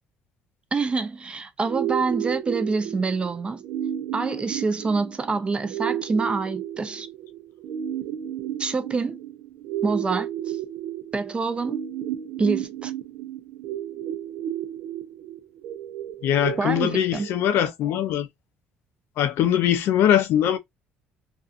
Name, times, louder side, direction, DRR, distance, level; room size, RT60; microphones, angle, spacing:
voice 1, 0.7-3.6 4.1-7.1 8.6-9.2 9.8-10.6 11.1-11.8 12.4-12.9 16.6-17.3, right 4 dB, 25° right, 0.5 m, -26 dB
sound 1, 1.6-17.6, right 11 dB, 75° right, 0.6 m, -33 dB
voice 2, 16.2-18.3 19.2-20.6, left 10 dB, 70° left, 0.5 m, -21 dB
2.5 x 2.4 x 2.5 m
supercardioid pair, 85°, 4 cm